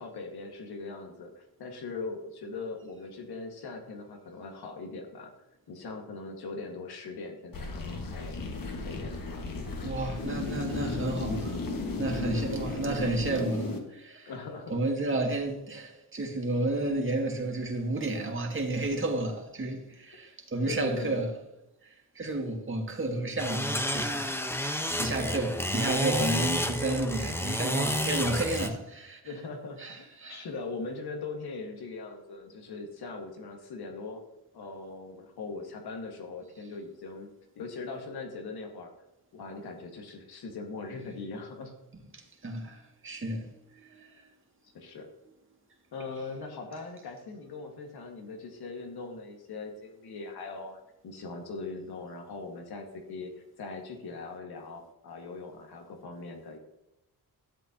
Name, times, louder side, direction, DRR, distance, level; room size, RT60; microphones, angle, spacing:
voice 1, 0.0-5.3 5.7-8.4 8.8-9.5 12.1-12.6 14.3-14.8 20.6-21.2 29.2-34.2 34.5-37.3 37.6-38.9 39.3-41.8 44.7-45.1 45.9-50.8 51.0-53.3 53.6-56.6, left 3 dB, 85° left, 1.9 m, -40 dB
sound 1, 7.5-13.8, left 3 dB, 60° left, 1.8 m, -35 dB
voice 2, 9.8-11.7 12.0-14.3 14.7-21.3 21.8-29.2 29.8-30.5 42.1-44.2, right 2 dB, 35° right, 2.2 m, -32 dB
sound 2, 23.4-28.7, left 1 dB, 5° left, 1.1 m, -30 dB
12.5 x 7.9 x 2.9 m
cardioid pair, 70°, 37 cm